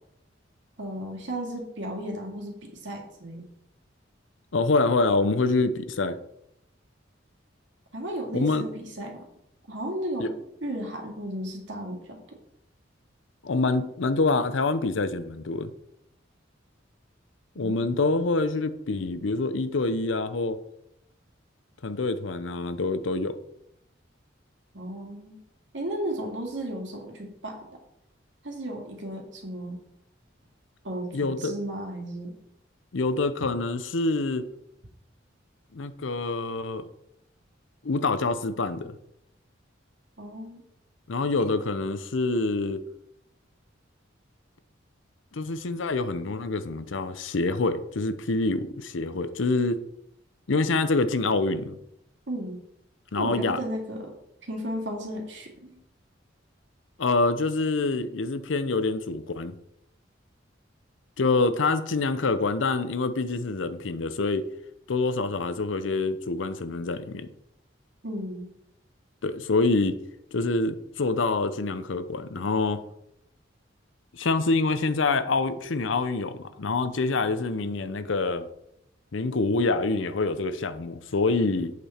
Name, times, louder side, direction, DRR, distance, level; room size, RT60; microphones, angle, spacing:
voice 1, 0.8-3.4 7.9-9.2 9.7-10.3 10.6-12.2 17.6-17.9 24.7-25.4 25.7-27.6 28.4-29.8 30.8-32.3 40.2-40.6 52.3-52.6 53.1-54.1 54.4-55.8 68.0-68.5, right 1 dB, 70° right, 1 dB, 2.4 m, -34 dB
voice 2, 4.5-6.2 8.3-8.6 10.2-10.3 13.4-15.7 17.6-20.6 21.8-23.4 31.1-31.5 32.9-34.5 35.7-36.9 37.8-39.0 41.1-42.8 45.3-49.8 50.5-51.8 53.1-53.6 57.0-59.6 61.2-64.5 64.9-67.3 69.2-70.0 70.3-72.8 74.1-78.5 79.1-81.7, left 3 dB, 80° left, 12 dB, 0.7 m, -26 dB
8.2 x 6.8 x 4.3 m, 0.79 s
head